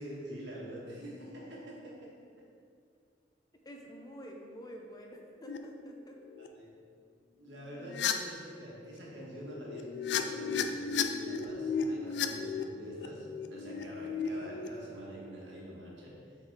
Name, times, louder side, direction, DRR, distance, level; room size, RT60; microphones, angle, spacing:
voice 1, 0.0-2.1 2.4-2.5 6.6-6.7 7.4-16.2, equal, 70° right, -4 dB, 1.6 m, -45 dB
voice 2, 3.6-6.2, equal, 20° left, 1 dB, 0.6 m, -48 dB
sound 1, 5.5-5.6 6.2-6.5 7.9-8.1 9.4-14.7, left 6 dB, 70° left, 0.4 m, -34 dB
7.1 x 4.0 x 4.7 m, 2.3 s
head